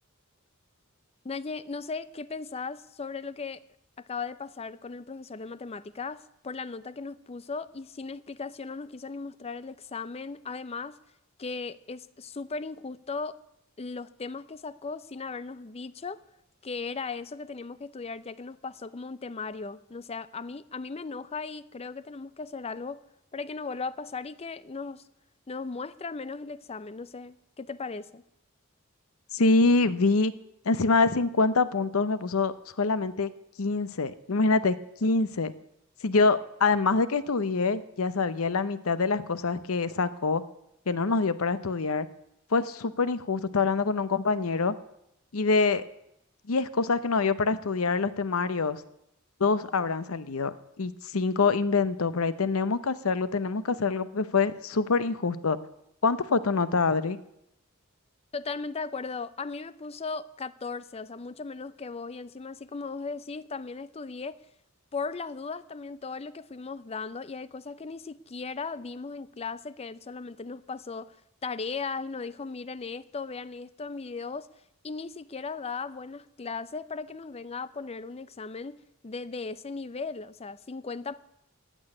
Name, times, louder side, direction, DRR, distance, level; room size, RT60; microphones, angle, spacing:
voice 1, 1.2-3.6 4.0-11.0 11.4-13.4 13.8-16.2 16.6-23.0 23.3-25.0 25.5-28.2 58.3-64.4 64.9-71.2 71.4-74.5 74.8-81.2, left 4 dB, 30° left, 0.5 m, -37 dB
voice 2, 29.3-30.3 30.6-33.3 33.6-35.5 36.0-40.4 40.9-42.1 42.5-44.7 45.3-45.8 46.5-48.8 49.4-55.6 56.0-57.2, left 4 dB, 75° left, 0.8 m, -25 dB
15.5 x 6.3 x 10.0 m
head